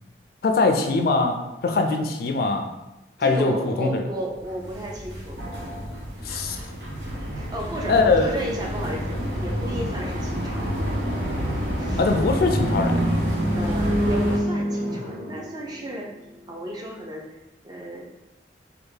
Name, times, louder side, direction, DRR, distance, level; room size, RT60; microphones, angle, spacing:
voice 1, 0.4-2.7 3.2-4.0 6.2-6.6 7.9-8.4 12.0-13.0, left 3 dB, 55° left, 5 dB, 0.3 m, -22 dB
voice 2, 3.2-5.4 7.3-11.0 11.8-12.0 13.5-16.1 16.5-17.4 17.6-18.1, equal, 25° right, -1 dB, 0.5 m, -33 dB
sound 1, 4.4-14.4, equal, 85° right, 0.8 m, -28 dB
sound 2, 12.4-16.5, equal, 65° right, 1.3 m, -27 dB
3.4 x 2.4 x 3.2 m, 0.96 s
head